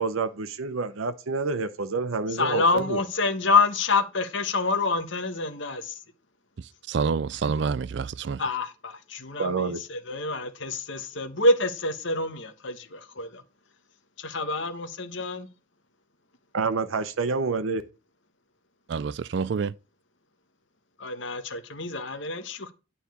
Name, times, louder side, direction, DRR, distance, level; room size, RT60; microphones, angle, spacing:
voice 1, 0.0-3.0 9.4-9.8 16.5-17.8, right 4 dB, 90° right, 0.8 m, -28 dB
voice 2, 2.3-5.8 8.4-13.4 14.2-15.5 21.0-22.7, left 3 dB, 65° left, 1.2 m, -27 dB
voice 3, 6.9-8.4 18.9-19.7, right 5 dB, 60° right, 0.4 m, -27 dB
9.5 x 4.2 x 6.8 m
head